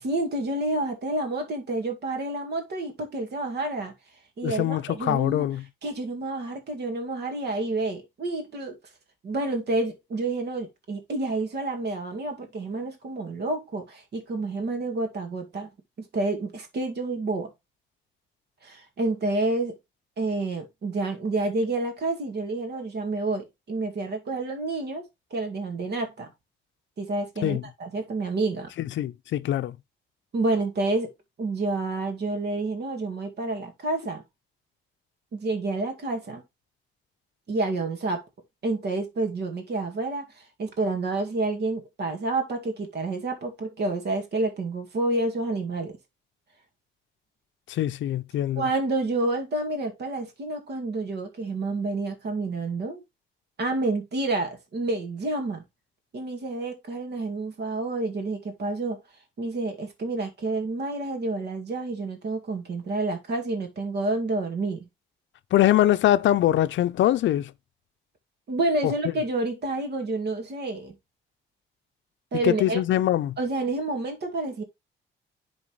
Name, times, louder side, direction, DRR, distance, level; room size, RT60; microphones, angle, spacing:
voice 1, 0.0-3.9 4.4-5.5 5.8-8.7 9.2-15.7 16.0-17.5 18.6-19.8 20.2-25.0 25.3-26.3 27.0-28.7 30.3-31.1 31.4-34.2 35.3-36.4 37.5-38.2 38.6-46.0 48.6-53.0 53.6-55.6 56.1-59.0 59.4-64.9 68.5-70.9 72.3-72.8 73.4-74.6, right 2 dB, 55° right, 2.1 m, -29 dB
voice 2, 4.4-5.6 27.4-27.6 28.8-29.7 47.7-48.6 65.5-67.5 68.8-68.9 72.4-73.4, left 13 dB, 70° left, 0.5 m, -23 dB
11.0 x 4.0 x 3.1 m
cardioid pair, 90°, 20 cm